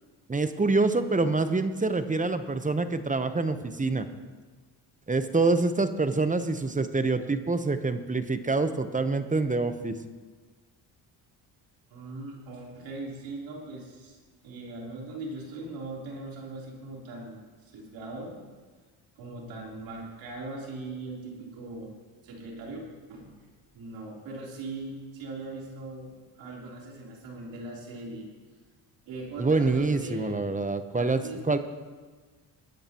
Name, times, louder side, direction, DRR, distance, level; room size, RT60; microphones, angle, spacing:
voice 1, 0.3-4.1 5.1-9.9 29.4-31.2 31.5-31.6, right 3 dB, 15° right, 9 dB, 1.0 m, -26 dB
voice 2, 11.9-14.2 14.4-18.5 19.2-21.9 22.2-23.3 23.7-28.3 29.1-30.4 31.0-31.4, right 2 dB, 80° right, -3 dB, 3.8 m, -40 dB
21.5 x 10.5 x 3.0 m, 1.4 s
supercardioid pair, 75°, 45 cm